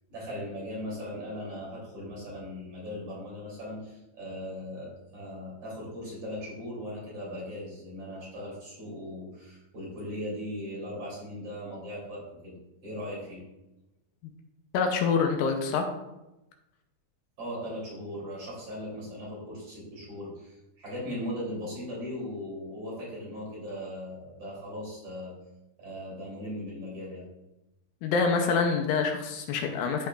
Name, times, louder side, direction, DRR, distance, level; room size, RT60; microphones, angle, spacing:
voice 1, 0.1-12.6 12.8-13.4 17.4-25.3 25.8-27.3, equal, 40° right, -6 dB, 3.9 m, -38 dB
voice 2, 14.7-15.9 28.0-30.1, left 5 dB, 80° left, 3 dB, 2.5 m, -26 dB
13.0 x 5.7 x 2.5 m, 0.94 s
omnidirectional pair, 4.5 m